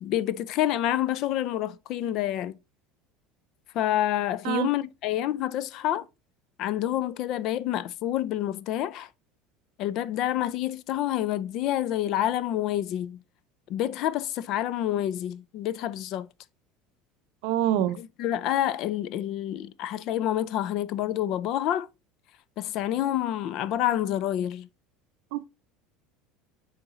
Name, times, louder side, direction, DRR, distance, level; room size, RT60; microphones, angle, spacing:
voice 1, 0.0-2.5 3.7-6.1 6.6-9.1 9.8-13.2 13.7-16.3 17.8-21.9 22.6-24.7, left 12 dB, 40° left, 0.3 m, -28 dB
voice 2, 17.4-18.0 25.3-25.4, right 12 dB, 65° right, 0.6 m, -25 dB
7.0 x 4.0 x 3.6 m
cardioid pair, 175°, 0 cm